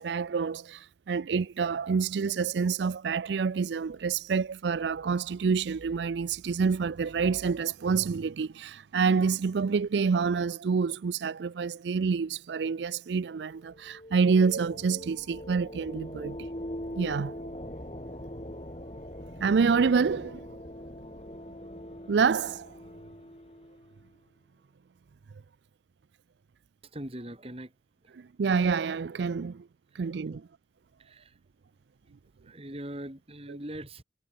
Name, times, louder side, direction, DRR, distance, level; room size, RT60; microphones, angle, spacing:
voice 1, 0.0-16.5 17.0-17.4 19.4-20.6 22.1-22.8 28.2-29.7 29.9-30.5, right 5 dB, 75° right, 0.4 m, -27 dB
sound 1, 13.5-24.1, equal, 35° left, 4.6 m, -42 dB
voice 2, 26.9-27.7 29.9-30.0 30.3-30.4 31.0-31.3 32.4-34.0, right 1 dB, 35° right, 3.0 m, -41 dB
head